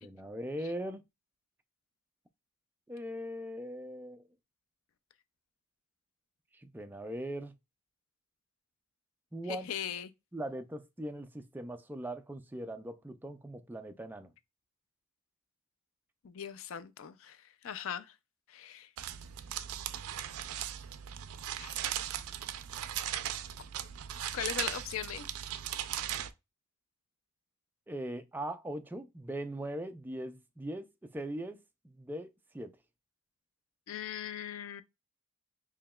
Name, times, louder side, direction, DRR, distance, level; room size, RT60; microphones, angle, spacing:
voice 1, 0.0-1.0 2.9-4.2 6.5-7.5 9.3-9.7 10.3-14.3 27.9-32.8, right 1 dB, 10° right, 0.3 m, -40 dB
voice 2, 9.5-10.1 16.2-17.4 17.6-18.1 18.5-18.9 21.6-21.8 24.3-25.3 33.9-34.8, left 9 dB, 65° left, 0.4 m, -39 dB
sound 1, 19.0-26.3, right 11 dB, 80° right, 0.4 m, -38 dB
4.8 x 2.9 x 2.2 m
head